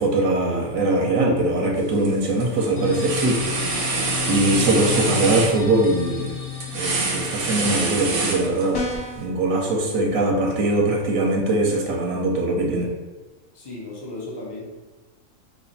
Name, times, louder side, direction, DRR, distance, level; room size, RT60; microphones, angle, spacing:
voice 1, 0.0-3.4 3.8-6.4 6.7-8.9 9.2-12.9, right 2 dB, 80° right, 0 dB, 1.0 m, -22 dB
sound 1, 1.8-2.1 2.4-8.9, right 3 dB, 55° right, 0.6 m, -26 dB
sound 2, 2.8-9.3, left 8 dB, 75° left, 1.3 m, -33 dB
sound 3, 8.7-9.3, left 1 dB, 55° left, 0.8 m, -29 dB
voice 2, 13.5-14.6, left 2 dB, 30° left, -5 dB, 0.5 m, -35 dB
3.2 x 2.4 x 3.9 m, 1.2 s
omnidirectional pair, 1.4 m